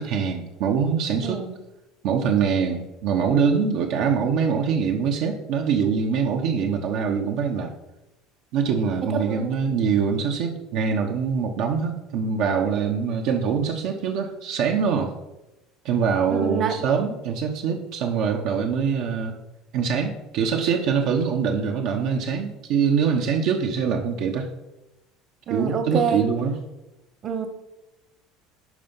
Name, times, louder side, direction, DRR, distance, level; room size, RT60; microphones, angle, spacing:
voice 1, 0.0-1.4 2.0-7.7 8.5-15.1 15.8-19.3 19.7-24.5 25.5-26.6, right 6 dB, 60° right, 3 dB, 0.9 m, -24 dB
voice 2, 1.2-1.5 9.1-9.8 16.3-16.8 25.5-26.2 27.2-27.5, right 6 dB, 35° right, 7 dB, 1.1 m, -27 dB
11.0 x 4.4 x 5.6 m, 0.98 s
cardioid pair, 150°, 0 cm